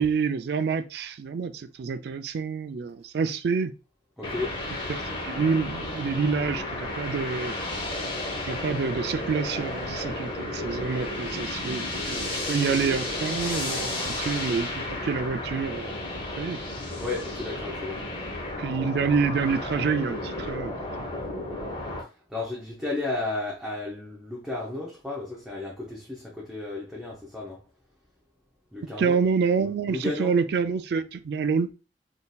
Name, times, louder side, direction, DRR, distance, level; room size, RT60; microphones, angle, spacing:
voice 1, 0.0-3.7 5.2-7.5 8.4-16.6 18.6-20.7 29.0-31.7, right 5 dB, 60° right, 0.3 m, -27 dB
sound 1, 4.2-22.0, left 2 dB, 30° left, 0.9 m, -33 dB
voice 2, 4.2-4.6 17.0-18.1 22.3-27.6 28.7-29.2 29.6-30.3, left 2 dB, 5° right, 0.6 m, -33 dB
3.7 x 2.6 x 2.3 m
head